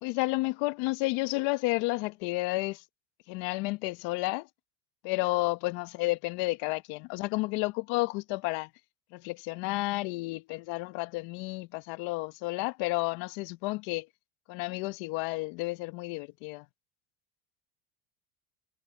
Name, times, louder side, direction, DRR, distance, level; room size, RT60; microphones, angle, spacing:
voice 1, 0.0-2.8 3.3-4.5 5.0-8.7 9.1-14.1 14.5-16.6, left 22 dB, 65° left, 1.4 m, -31 dB
supercardioid pair, 120°, 41 cm